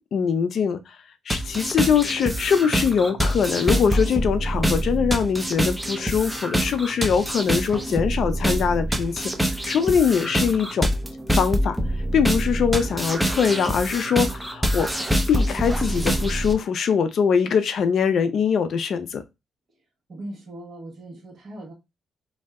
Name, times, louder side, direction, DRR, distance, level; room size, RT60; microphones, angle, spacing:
voice 1, 0.1-0.8 1.3-10.9 11.3-11.8 12.1-14.9 15.3-19.2, left 6 dB, 60° left, 0.4 m, -22 dB
sound 1, 1.3-16.5, equal, 5° right, 0.6 m, -25 dB
voice 2, 20.1-21.7, right 1 dB, 45° right, 1.1 m, -39 dB
2.6 x 2.1 x 3.5 m
cardioid pair, 90°, 0 cm